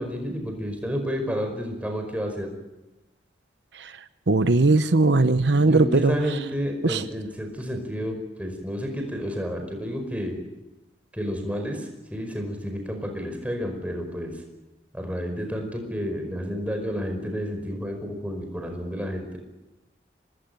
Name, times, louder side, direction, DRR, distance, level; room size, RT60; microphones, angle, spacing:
voice 1, 0.0-2.5 5.6-10.4 11.1-14.4 14.9-19.4, equal, 5° right, 4 dB, 5.1 m, -30 dB
voice 2, 4.3-6.2 6.8-7.0, right 3 dB, 75° right, 11 dB, 0.9 m, -19 dB
25.5 x 20.0 x 9.1 m, 1.0 s
head